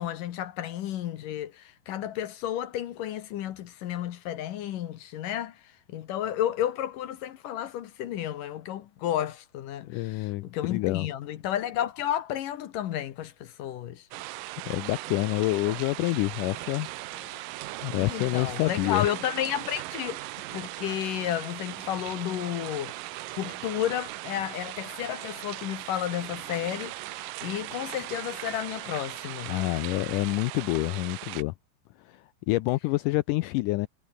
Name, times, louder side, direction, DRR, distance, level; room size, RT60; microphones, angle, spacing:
voice 1, 0.0-14.1 18.0-22.9 23.3-29.6, left 11 dB, 70° left, 2.6 m, -32 dB
voice 2, 9.9-11.1 14.7-16.9 17.1-17.5 17.8-19.1 29.5-31.5 32.1-32.2 32.5-33.9, left 20 dB, 90° left, 1.8 m, -27 dB
sound 1, 14.1-31.4, right 17 dB, 75° right, 2.2 m, -39 dB
omnidirectional pair, 4.3 m